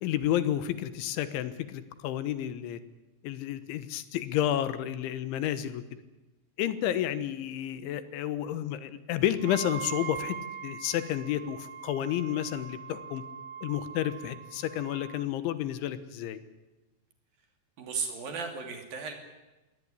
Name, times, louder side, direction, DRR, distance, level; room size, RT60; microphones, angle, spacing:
voice 1, 0.0-2.8 3.2-6.0 6.6-10.4 10.6-13.2 13.6-16.4, left 11 dB, 80° left, 13 dB, 3.6 m, -31 dB
Wind instrument woodwind instrument, 9.4-15.3, right 8 dB, 90° right, 3.6 m, -42 dB
voice 2, 17.8-19.1, right 5 dB, 55° right, 5 dB, 4.4 m, -35 dB
22.5 x 18.5 x 10.0 m, 1.1 s
omnidirectional pair, 5.4 m